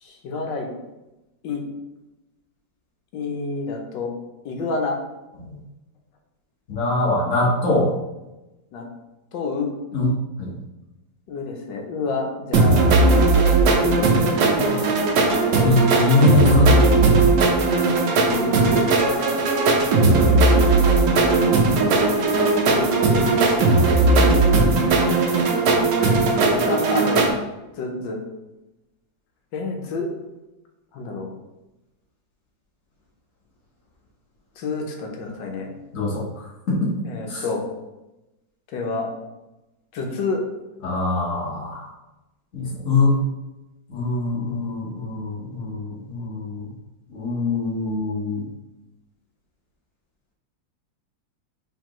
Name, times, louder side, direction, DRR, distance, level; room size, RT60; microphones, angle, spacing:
voice 1, 0.0-0.7 1.4-1.6 3.1-4.1 4.4-5.0 8.7-8.8 9.3-9.7 11.3-13.5 13.8-14.1 18.2-18.9 20.0-21.4 22.7-23.3 26.5-27.3 27.8-28.2 29.5-30.2 30.9-31.3 34.6-35.7 37.0-37.6 38.7-39.1 39.9-40.4, left 3 dB, 75° left, 2 dB, 1.5 m, -28 dB
voice 2, 6.7-7.9 9.9-10.5 14.5-14.9 15.5-16.7 35.9-36.9 37.3-37.4 40.8-41.9 42.5-43.2 43.9-46.7 47.1-48.5, left 2 dB, 50° left, -5 dB, 1.3 m, -23 dB
sound 1, 12.5-27.3, right 3 dB, 70° right, 1.3 m, -18 dB
4.6 x 3.7 x 3.0 m, 1.0 s
omnidirectional pair, 2.1 m